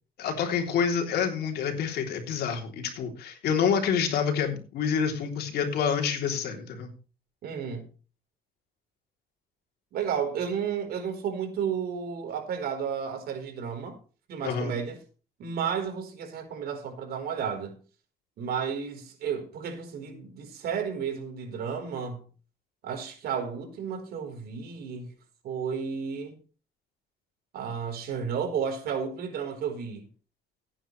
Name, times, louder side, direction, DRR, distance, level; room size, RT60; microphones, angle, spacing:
voice 1, 0.2-6.9 14.4-14.7, left 7 dB, 70° left, 3.4 m, -27 dB
voice 2, 7.4-7.9 9.9-14.0 14.3-15.0 15.4-17.8 18.4-22.2 22.8-25.1 25.4-26.3 27.5-30.1, right 7 dB, 65° right, 4.4 m, -32 dB
16.5 x 9.3 x 3.3 m
cardioid pair, 110°, 17 cm